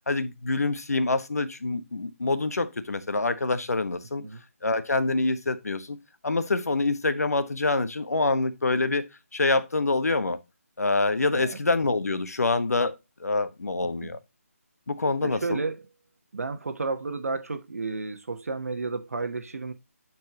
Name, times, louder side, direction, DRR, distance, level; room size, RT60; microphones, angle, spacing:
voice 1, 0.1-4.2 4.6-6.0 6.2-10.4 10.8-14.2 14.9-15.6, left 3 dB, 85° left, 1.2 m, -26 dB
voice 2, 15.2-15.9 16.3-19.7, right 3 dB, 70° right, 1.1 m, -32 dB
10.5 x 4.6 x 2.8 m
hypercardioid pair, 170°, 8 cm